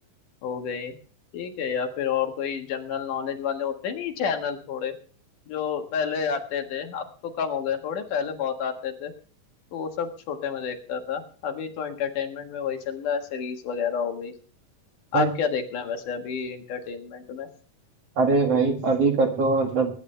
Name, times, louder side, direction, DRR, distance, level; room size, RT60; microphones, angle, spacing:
voice 1, 0.4-0.9 1.3-4.9 5.5-9.1 9.7-14.3 15.1-17.5, left 7 dB, 70° left, 5 dB, 3.1 m, -29 dB
voice 2, 18.2-19.9, right 3 dB, 50° right, 3 dB, 2.8 m, -21 dB
22.5 x 11.0 x 3.3 m, 0.42 s
omnidirectional pair, 3.9 m